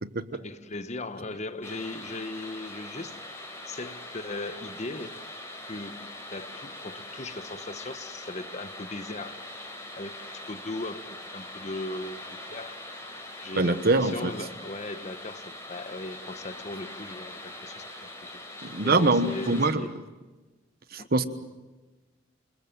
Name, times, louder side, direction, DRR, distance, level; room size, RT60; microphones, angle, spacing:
voice 1, 0.3-3.3 3.7-5.2 5.7-9.4 10.0-12.2 12.5-12.8 13.4-17.9 18.6-20.0 21.0-21.1, left 2 dB, 35° left, 11 dB, 1.1 m, -38 dB
sound 1, 1.6-19.7, left 1 dB, 15° left, 4.6 m, -42 dB
voice 2, 13.6-14.3 18.6-19.9 20.9-21.2, right 2 dB, 50° right, 12 dB, 1.2 m, -24 dB
28.0 x 21.0 x 7.5 m, 1.2 s
head